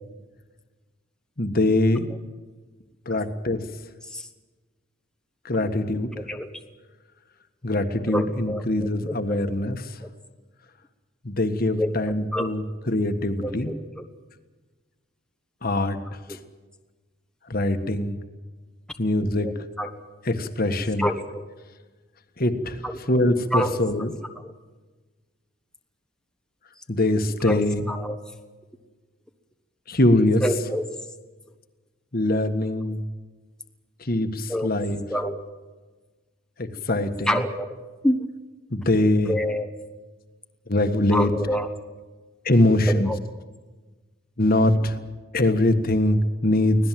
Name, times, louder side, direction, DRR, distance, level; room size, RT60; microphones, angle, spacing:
voice 1, 1.4-2.1 3.0-3.6 5.4-6.1 7.6-10.0 11.2-13.8 15.6-16.0 17.5-18.2 19.0-19.5 20.2-21.1 22.4-22.8 23.1-24.1 26.9-27.9 29.9-30.4 32.1-33.0 34.0-35.0 36.6-37.4 38.7-39.4 40.7-41.3 42.4-43.1 44.4-45.0 45.3-46.8, left 1 dB, 45° left, 7 dB, 1.6 m, -23 dB
voice 2, 6.2-6.5 8.1-9.5 11.8-12.5 13.4-14.0 16.3-16.4 19.4-19.9 21.0-21.5 22.8-23.0 23.5-23.8 27.4-27.6 27.9-28.2 30.4-30.8 34.5-34.7 35.1-35.4 37.3-37.7 38.0-38.2 39.3-39.7 41.1-41.7 42.9-43.2, equal, 5° left, 5 dB, 1.2 m, -27 dB
25.0 x 17.5 x 7.7 m, 1.3 s
head